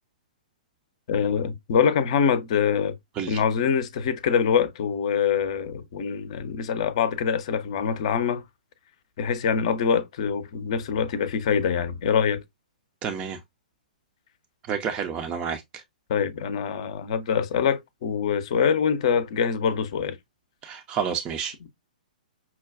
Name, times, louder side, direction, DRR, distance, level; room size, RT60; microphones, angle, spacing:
voice 1, 1.1-3.0 3.3-8.4 9.2-12.4 16.1-20.2, left 7 dB, 45° left, 0.6 m, -24 dB
voice 2, 13.0-13.4 14.7-15.8 20.6-21.7, right 7 dB, 20° right, 0.5 m, -30 dB
5.7 x 2.2 x 2.4 m
figure-of-eight pair, 115°, 5 cm